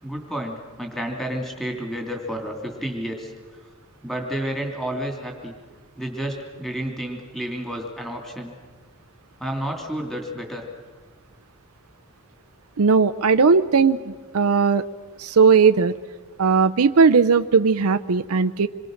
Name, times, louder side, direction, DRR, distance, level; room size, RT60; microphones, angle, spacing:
voice 1, 0.0-3.3 4.0-5.5 6.0-8.5 9.4-10.7, equal, ahead, 1 dB, 3.0 m, -30 dB
voice 2, 12.8-14.9 15.2-15.9 16.4-18.7, right 5 dB, 85° right, 10 dB, 0.6 m, -18 dB
27.5 x 23.0 x 6.5 m, 1.4 s
head